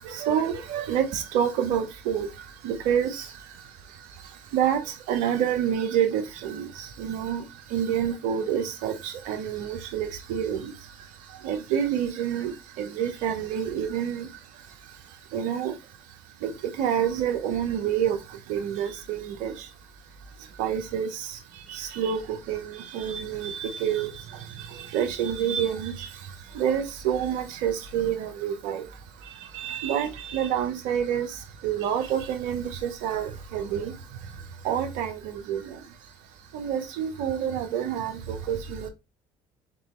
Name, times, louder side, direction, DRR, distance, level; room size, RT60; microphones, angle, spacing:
voice 1, 0.0-19.8 20.3-36.1 36.5-38.9, right 9 dB, 75° right, 0.7 m, -29 dB
3.8 x 3.7 x 3.1 m
hypercardioid pair, 70°, 14 cm